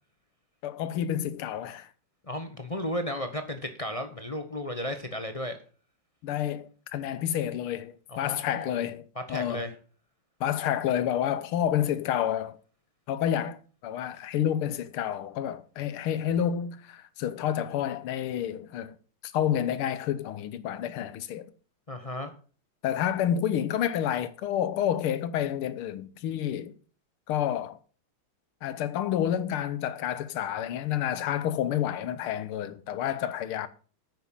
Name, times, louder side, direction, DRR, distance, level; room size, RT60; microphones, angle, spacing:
voice 1, 0.6-1.9 6.2-9.7 10.4-12.6 13.1-19.0 19.2-21.5 22.8-26.7 27.3-27.8 28.6-33.7, left 10 dB, 90° left, 1.7 m, -29 dB
voice 2, 2.2-5.6 8.1-8.8 9.1-9.7 21.9-22.3, left 1 dB, 35° left, 0.5 m, -34 dB
9.4 x 6.1 x 7.3 m
omnidirectional pair, 2.3 m